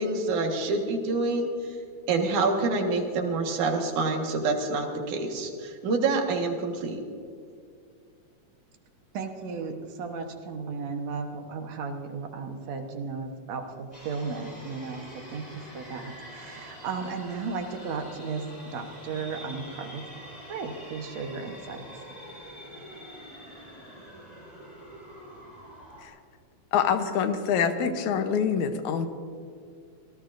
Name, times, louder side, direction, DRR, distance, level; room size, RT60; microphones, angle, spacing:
voice 1, 0.0-1.5 2.1-7.0, right 3 dB, 85° right, 3 dB, 3.1 m, -27 dB
voice 2, 9.1-20.1 20.5-21.9, right 4 dB, 65° right, 4 dB, 2.3 m, -35 dB
sound 1, 13.9-26.1, equal, 10° left, 4.3 m, -45 dB
voice 3, 26.7-29.1, left 7 dB, 80° left, 8 dB, 2.3 m, -25 dB
26.5 x 17.5 x 2.6 m, 2.3 s
omnidirectional pair, 3.4 m